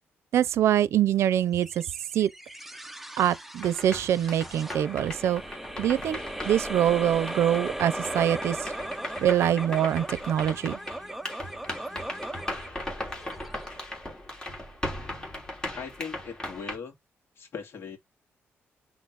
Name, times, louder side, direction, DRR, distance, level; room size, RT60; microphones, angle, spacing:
voice 1, 0.3-1.8 2.1-2.3 3.2-5.4 5.8-8.6 9.2-10.8, right 10 dB, 75° right, 0.5 m, -24 dB
sound 1, 1.6-14.2, right 1 dB, 5° right, 0.8 m, -38 dB
sound 2, 3.6-16.8, left 1 dB, 15° left, 3.5 m, -38 dB
voice 2, 15.7-16.9 17.4-18.0, left 6 dB, 60° left, 2.5 m, -39 dB
6.0 x 3.9 x 4.1 m
cardioid pair, 105°, 5 cm